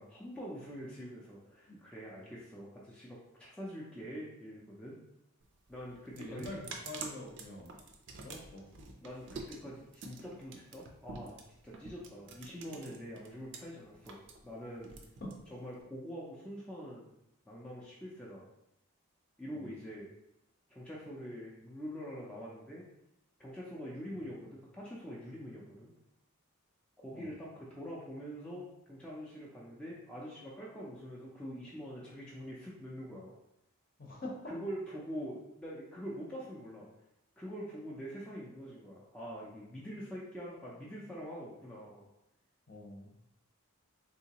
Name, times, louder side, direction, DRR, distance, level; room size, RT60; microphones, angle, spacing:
voice 1, 0.0-5.0 5.7-6.5 9.0-11.4 11.6-14.9 15.5-17.1 17.5-18.5 19.4-20.1 20.7-22.8 23.4-25.9 27.0-33.3 34.5-36.9 37.4-42.1, equal, 5° left, -6 dB, 0.4 m, -44 dB
sound 1, 5.4-13.6 13.9-15.8, right 4 dB, 55° right, 0.4 m, -48 dB
voice 2, 6.2-7.8 8.1-9.0 15.2-15.4 19.5-19.7 24.1-24.2 27.1-27.3 34.0-34.5 42.7-43.1, left 1 dB, 40° left, -1 dB, 0.7 m, -45 dB
3.6 x 2.8 x 2.8 m, 0.84 s
head